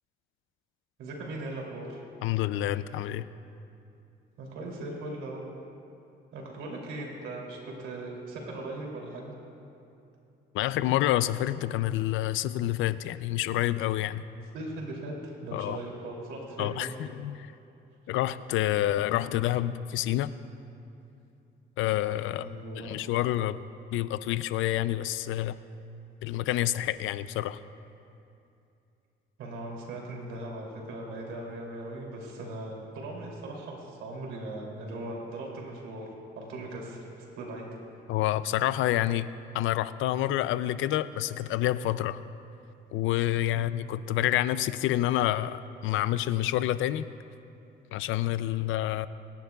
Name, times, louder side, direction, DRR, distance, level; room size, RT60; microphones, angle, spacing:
voice 1, 1.0-2.0 4.4-5.4 6.3-9.3 14.5-17.0 22.4-23.0 29.4-36.1 36.3-37.1 37.4-37.7 37.9-38.0 43.5-43.7, right 2 dB, 90° right, -1 dB, 2.8 m, -39 dB
voice 2, 2.2-3.3 10.5-14.2 15.5-15.8 16.6-17.5 18.1-20.3 21.8-22.5 22.8-23.6 23.9-25.6 26.2-27.6 38.1-39.3 39.5-42.2 42.9-47.0 47.9-49.1, left 13 dB, 90° left, 15 dB, 0.4 m, -28 dB
27.0 x 10.5 x 2.3 m, 2.7 s
cardioid pair, 90°, 20 cm